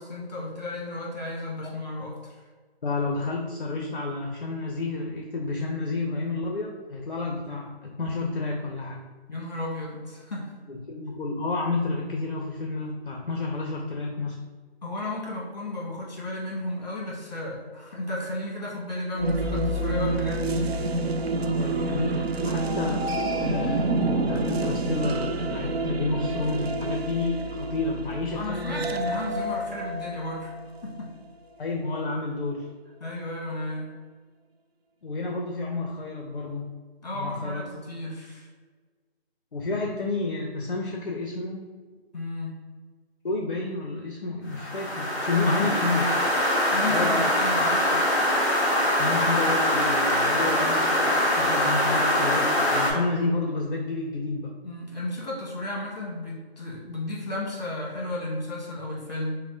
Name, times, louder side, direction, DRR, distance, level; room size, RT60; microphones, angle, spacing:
voice 1, 0.1-2.4 9.3-10.5 14.8-20.7 21.0-21.1 28.3-31.1 33.0-33.9 37.0-38.5 42.1-42.6 45.4-45.8 46.7-48.0 54.6-59.4, left 1 dB, 40° left, -4 dB, 1.3 m, -33 dB
voice 2, 2.8-9.0 10.7-14.4 21.5-23.0 23.4-24.0 24.3-29.0 31.6-32.7 35.0-36.7 37.1-37.7 39.5-41.7 43.2-46.0 46.9-47.3 49.0-54.5, left 3 dB, 55° left, 1 dB, 0.6 m, -30 dB
sound 1, 19.2-31.0, right 2 dB, 75° right, 0.5 m, -28 dB
sound 2, 44.5-52.9, left 1 dB, 15° left, 0.7 m, -23 dB
5.7 x 2.1 x 2.7 m, 1.5 s
figure-of-eight pair, 170°, 32 cm